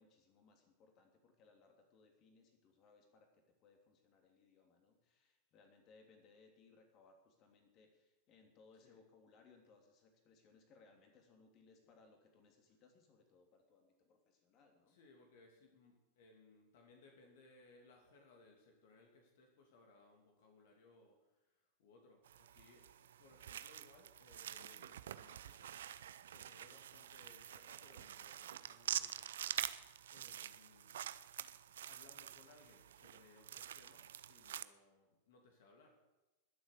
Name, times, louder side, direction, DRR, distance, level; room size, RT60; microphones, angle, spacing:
voice 1, 0.0-15.0, left 4 dB, 35° left, 3 dB, 3.0 m, -67 dB
voice 2, 14.9-25.7 26.3-29.7 30.1-31.1 31.8-36.0, left 3 dB, 55° left, 2 dB, 2.6 m, -65 dB
sound 1, 22.3-34.6, right 10 dB, 60° right, 0.6 m, -47 dB
20.5 x 7.9 x 6.7 m, 1.0 s
figure-of-eight pair, 90°, 0 cm